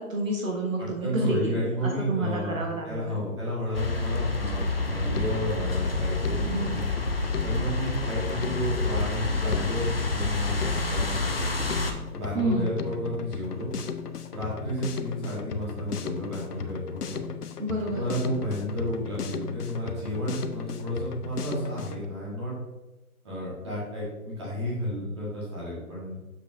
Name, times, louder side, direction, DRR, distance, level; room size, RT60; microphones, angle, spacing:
voice 1, 0.0-3.2 6.5-6.9 12.3-12.7 17.6-18.1, right 2 dB, 60° right, 0 dB, 1.1 m, -30 dB
voice 2, 0.8-6.9 7.4-11.6 12.1-13.7 14.3-17.2 17.9-22.5 23.2-26.2, equal, 20° right, -8 dB, 1.7 m, -32 dB
sound 1, 3.7-11.9, left 3 dB, 40° left, 0.5 m, -28 dB
Drum kit, 4.6-22.0, left 7 dB, 90° left, 0.7 m, -37 dB
7.0 x 5.7 x 2.6 m, 1.1 s
hypercardioid pair, 170°, 45 cm